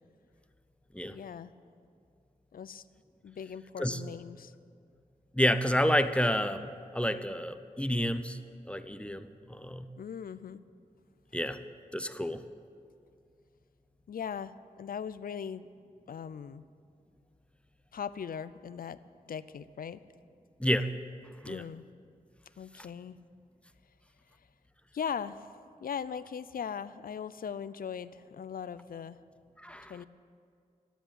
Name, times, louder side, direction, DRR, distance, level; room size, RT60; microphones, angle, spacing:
voice 1, 1.1-1.5 2.5-2.8 3.2-4.5 10.0-10.6 14.1-15.7 16.1-16.7 17.9-19.0 19.3-20.0 21.5-21.9 22.6-23.2 24.9-25.5 25.8-29.2 29.9-30.1, left 7 dB, 75° left, 15 dB, 0.5 m, -39 dB
voice 2, 5.3-8.4 8.7-9.9 11.3-11.6 11.9-12.4 20.6-20.9 21.4-21.6 29.6-29.9, equal, 5° left, 10 dB, 0.7 m, -29 dB
12.5 x 10.0 x 8.8 m, 2.3 s
cardioid pair, 65°, 15 cm